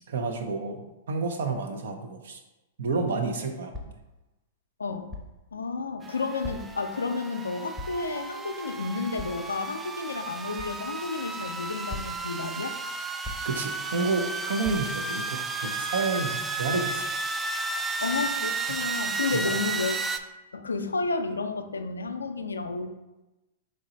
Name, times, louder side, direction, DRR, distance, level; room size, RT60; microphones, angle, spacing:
voice 1, 0.1-2.4 2.8-3.9 13.4-17.1 18.7-18.8 19.3-19.6, right 3 dB, 70° right, 4 dB, 0.7 m, -30 dB
sound 1, 3.7-4.1 5.1-5.4 6.4-6.9 7.8-8.1 9.2-9.4 10.6-10.8 11.9-12.3 13.2-13.6 14.6-14.8, left 1 dB, ahead, 0.7 m, -39 dB
voice 2, 4.8-5.1 5.5-12.9 18.0-20.0 20.5-22.9, left 3 dB, 85° left, 7 dB, 0.4 m, -31 dB
sound 2, 6.0-20.2, right 3 dB, 15° right, 0.3 m, -33 dB
3.9 x 3.2 x 3.8 m, 1.0 s
hypercardioid pair, 110°, 0 cm